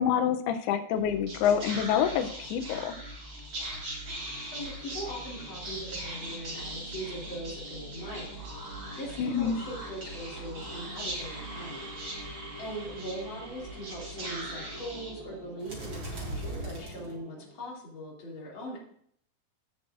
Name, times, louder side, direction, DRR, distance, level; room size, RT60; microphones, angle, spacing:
voice 1, 0.0-2.9 9.2-9.6, left 8 dB, 90° left, 8 dB, 2.7 m, -27 dB
Whispering, 0.9-17.5, right 1 dB, 35° right, 3.2 m, -40 dB
voice 2, 4.5-11.9 12.6-18.8, equal, 35° left, -3 dB, 3.0 m, -40 dB
17.0 x 6.4 x 2.5 m, 0.65 s
omnidirectional pair, 4.4 m